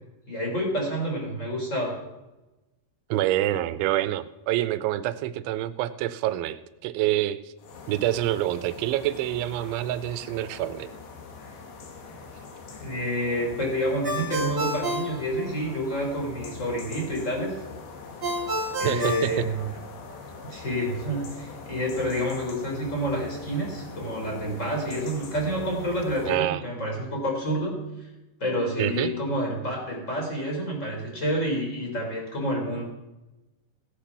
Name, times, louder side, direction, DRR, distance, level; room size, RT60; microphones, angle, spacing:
voice 1, 0.3-2.0 12.8-17.5 18.8-19.7 20.4-27.7 28.4-32.9, equal, 15° left, 0 dB, 3.6 m, -28 dB
voice 2, 3.1-7.5 7.9-10.9 18.8-19.4 26.3-26.6 28.8-29.1, right 14 dB, 85° right, 12 dB, 3.1 m, -27 dB
sound 1, 7.6-26.4, left 4 dB, 70° left, 3.9 m, -43 dB
Ringtone, 14.0-16.0 18.2-20.2, equal, 30° right, 1.6 m, -30 dB
17.5 x 8.5 x 6.0 m, 1.0 s
omnidirectional pair, 5.3 m